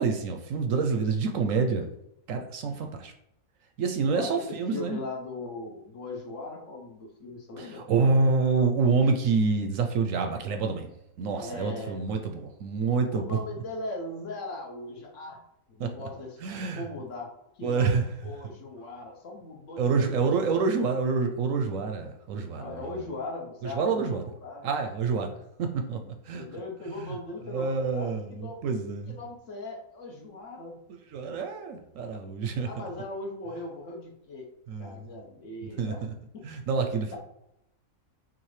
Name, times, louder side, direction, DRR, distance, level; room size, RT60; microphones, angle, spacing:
voice 1, 0.0-1.9 2.3-3.1 3.8-5.0 7.6-10.9 11.2-13.4 15.8-15.9 16.4-16.8 17.6-18.1 19.8-22.8 23.6-24.2 24.6-25.3 25.6-26.0 26.3-26.4 27.0-27.1 27.5-29.2 31.1-32.7 34.7-35.0 35.8-36.1 36.4-37.2, right 4 dB, 70° right, 4 dB, 0.9 m, -27 dB
voice 2, 4.1-7.8 11.3-12.1 13.1-15.4 15.7-17.3 17.6-17.9 18.2-20.6 22.5-24.7 26.3-28.6 29.1-30.8 32.6-34.5 34.8-36.0 36.3-36.6 37.1-37.2, left 2 dB, 60° left, 0 dB, 1.2 m, -39 dB
5.9 x 2.5 x 3.2 m, 0.82 s
omnidirectional pair, 1.6 m